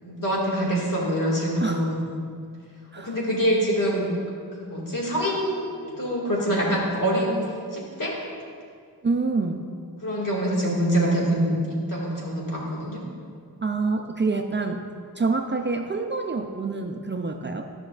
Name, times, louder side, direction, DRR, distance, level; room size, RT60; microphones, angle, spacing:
voice 1, 0.0-1.9 3.0-4.1 4.6-7.4 7.7-8.1 10.0-11.6 11.9-13.0, equal, 60° left, -4 dB, 2.0 m, -25 dB
voice 2, 1.6-1.9 2.9-3.2 9.0-9.6 13.6-14.8 15.2-17.7, right 3 dB, 30° right, 4 dB, 0.4 m, -26 dB
12.5 x 6.0 x 2.4 m, 2.2 s
wide cardioid pair, 80°, 37 cm